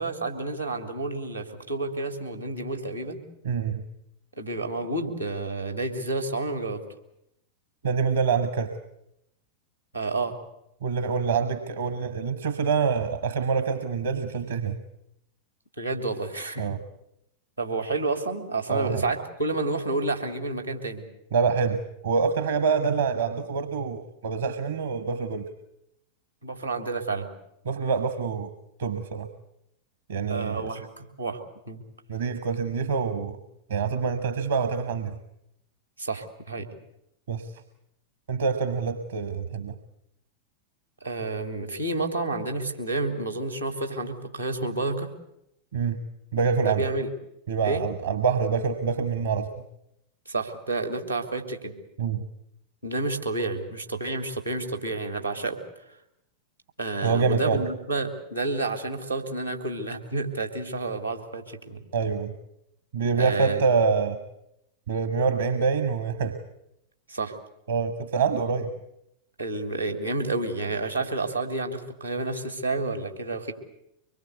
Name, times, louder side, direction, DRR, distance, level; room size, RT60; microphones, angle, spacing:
voice 1, 0.0-3.2 4.4-6.8 9.9-10.3 15.8-16.7 17.6-21.0 26.4-27.3 30.3-31.8 36.0-36.7 41.0-45.1 46.6-47.1 47.6-47.8 50.3-51.7 52.8-55.6 56.8-61.8 63.2-63.6 67.1-67.3 69.4-73.5, right 2 dB, 90° right, 6 dB, 3.1 m, -30 dB
voice 2, 3.4-3.8 7.8-8.8 10.8-14.8 16.6-16.8 18.7-19.0 21.3-25.5 27.6-28.5 28.8-29.3 30.1-30.8 32.1-33.4 33.7-35.1 37.3-37.5 38.3-39.7 45.7-46.0 46.3-46.8 47.5-49.5 52.0-52.2 57.0-57.6 61.9-62.3 62.9-64.2 64.9-66.4 67.7-68.7, right 5 dB, 65° right, 10 dB, 1.4 m, -26 dB
24.5 x 22.0 x 8.3 m, 0.80 s
figure-of-eight pair, 90°, 0 cm